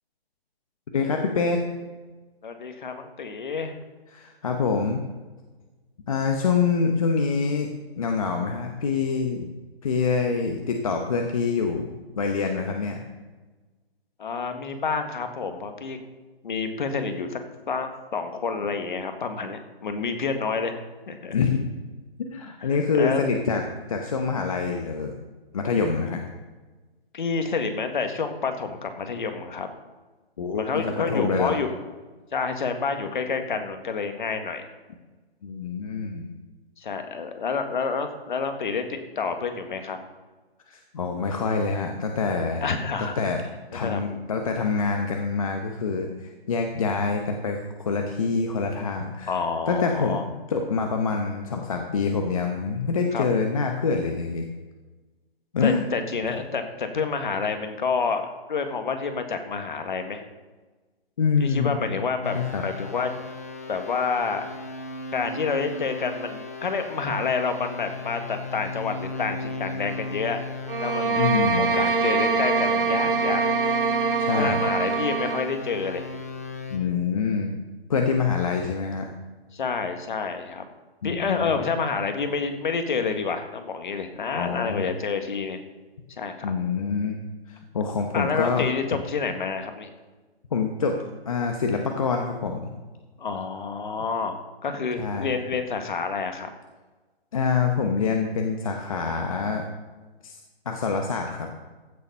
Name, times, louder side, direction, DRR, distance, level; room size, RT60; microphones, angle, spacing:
voice 1, 0.9-1.6 4.1-5.0 6.1-7.7 8.0-9.5 9.8-11.9 12.2-13.0 21.3-21.7 22.2-23.6 23.9-25.1 25.5-26.2 30.4-31.6 35.4-36.3 40.7-42.7 43.2-43.4 43.7-49.4 49.7-50.2 50.5-54.5 55.5-55.8 61.2-61.8 62.3-62.6 71.2-71.7 74.2-74.6 76.7-77.6 77.9-79.1 81.0-81.5 84.4-84.9 86.4-87.2 87.5-89.0 90.5-91.0 91.3-92.7 95.0-95.4 97.3-99.6 100.2-100.4 100.6-101.5, left 5 dB, 35° left, 3 dB, 0.9 m, -26 dB
voice 2, 2.4-3.8 14.2-16.0 16.4-17.4 17.7-20.7 21.1-21.4 22.6-22.7 23.0-23.2 27.1-29.7 30.5-31.7 32.3-34.7 36.8-40.0 42.6-43.1 43.8-44.2 49.3-50.2 53.1-53.2 55.6-60.2 61.4-62.4 62.6-63.1 63.7-64.4 65.1-70.4 70.8-71.2 71.6-73.4 74.3-76.0 79.5-80.6 81.0-85.6 86.2-86.5 88.1-89.9 93.2-96.5, left 5 dB, 50° left, 7 dB, 1.6 m, -28 dB
sound 1, 62.2-76.8, left 2 dB, 15° left, 0.5 m, -36 dB
sound 2, 70.7-75.5, right 4 dB, 55° right, 1.1 m, -24 dB
15.0 x 7.0 x 5.5 m, 1.3 s
hypercardioid pair, 170°, 32 cm